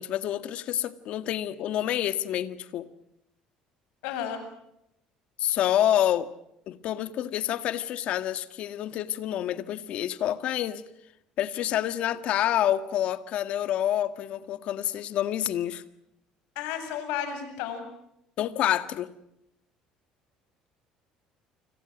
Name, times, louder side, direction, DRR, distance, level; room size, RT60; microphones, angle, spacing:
voice 1, 0.0-2.9 5.4-6.3 6.7-10.8 11.4-15.8 18.4-19.1, left 11 dB, 55° left, 1.9 m, -28 dB
voice 2, 4.0-4.4 16.6-17.8, left 9 dB, 90° left, 7.9 m, -32 dB
30.0 x 25.5 x 6.2 m
cardioid pair, 140°, 2 cm